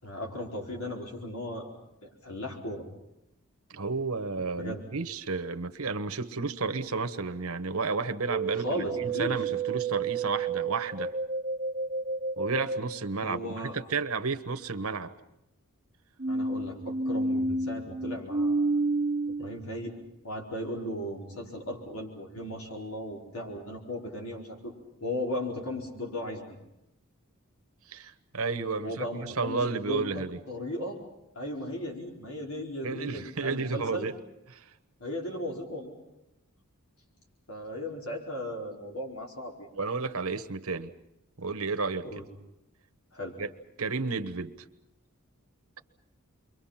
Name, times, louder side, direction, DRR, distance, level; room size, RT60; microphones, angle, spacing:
voice 1, 0.0-1.7 2.0-2.9 4.5-4.8 8.5-9.4 13.2-13.8 16.3-18.6 19.3-19.9 20.2-24.7 25.0-26.4 28.8-31.0 31.3-34.1 35.0-36.0 37.5-39.7 42.1-42.2 43.1-43.4, equal, 70° left, 0 dB, 4.7 m, -36 dB
voice 2, 3.7-11.1 12.4-15.1 27.9-30.4 32.8-34.2 34.5-34.6 39.8-40.9 41.4-42.2 43.4-43.5 43.8-44.5, right 4 dB, 70° right, 9 dB, 1.2 m, -32 dB
sound 1, 8.3-12.9 16.2-19.5, right 3 dB, 35° right, 1.0 m, -30 dB
29.5 x 23.5 x 5.8 m, 0.87 s
head